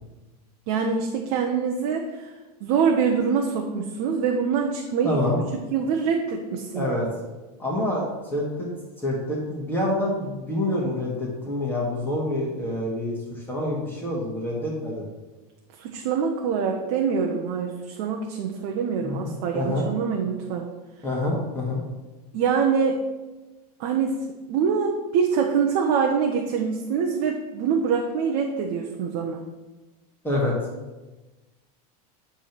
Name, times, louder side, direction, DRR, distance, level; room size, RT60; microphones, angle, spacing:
voice 1, 0.7-2.3 2.6-5.2 5.7-6.9 15.8-20.7 22.3-23.0 23.8-24.1 24.5-29.4, right 6 dB, 60° right, 1 dB, 1.0 m, -24 dB
voice 2, 5.0-5.4 6.7-7.1 7.6-8.7 9.0-15.0 19.0-19.9 21.0-21.8 30.2-30.5, left 1 dB, 10° left, -5 dB, 2.3 m, -27 dB
10.0 x 3.7 x 6.1 m, 1.1 s
supercardioid pair, 115°, 20 cm